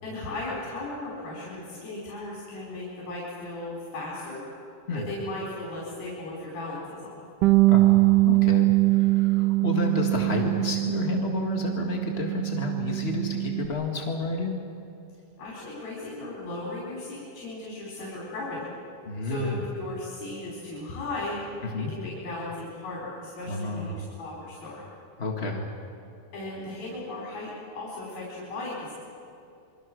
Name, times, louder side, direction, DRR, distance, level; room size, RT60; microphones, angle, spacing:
voice 1, 0.0-4.4 4.9-7.2 15.4-18.7 19.2-21.4 21.9-24.8 26.3-28.9, left 2 dB, 80° left, -5 dB, 6.9 m, -36 dB
Bass guitar, 7.4-13.7, right 21 dB, 75° right, 2.1 m, -22 dB
voice 2, 7.7-14.6 19.1-19.7 21.6-21.9 23.4-24.0 25.2-25.7, left 2 dB, 40° left, 2 dB, 0.9 m, -30 dB
27.0 x 25.0 x 6.4 m, 2.6 s
omnidirectional pair, 4.1 m